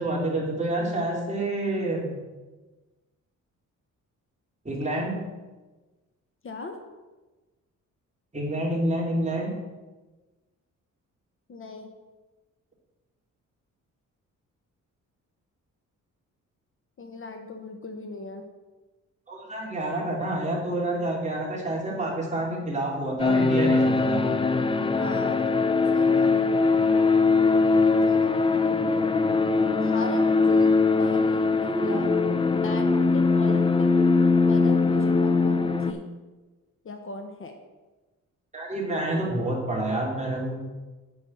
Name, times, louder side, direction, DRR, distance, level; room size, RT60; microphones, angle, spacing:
voice 1, 0.0-2.1 4.6-5.2 8.3-9.5 19.3-24.2 38.5-40.6, right 1 dB, 20° right, -3 dB, 3.0 m, -28 dB
voice 2, 6.4-6.8 11.5-11.9 17.0-18.5 24.9-25.6 25.9-26.6 28.0-28.3 29.6-30.7 31.0-32.1 32.5-33.9 34.5-36.0 36.8-37.6, left 3 dB, 40° left, 5 dB, 1.0 m, -38 dB
sound 1, 23.2-35.9, left 4 dB, 15° left, 0.6 m, -21 dB
8.6 x 5.4 x 7.6 m, 1.2 s
cardioid pair, 120°, 31 cm